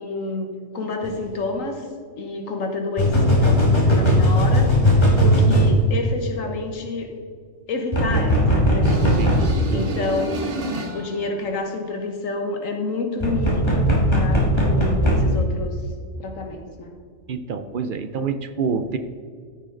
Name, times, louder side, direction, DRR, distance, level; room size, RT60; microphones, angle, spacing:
voice 1, 0.0-1.9 2.2-7.1 7.7-10.5 10.9-15.9 16.2-16.9, left 3 dB, 75° left, 4 dB, 1.5 m, -29 dB
sound 1, 1.0-1.1 3.0-5.7 7.9-9.5 13.2-15.2, equal, 20° left, 1.8 m, -18 dB
sound 2, 8.8-11.3, right 2 dB, 45° right, 1.1 m, -30 dB
voice 2, 9.6-10.1 17.3-19.0, right 5 dB, 65° right, 10 dB, 0.5 m, -27 dB
13.5 x 6.4 x 3.9 m, 2.1 s
omnidirectional pair, 1.4 m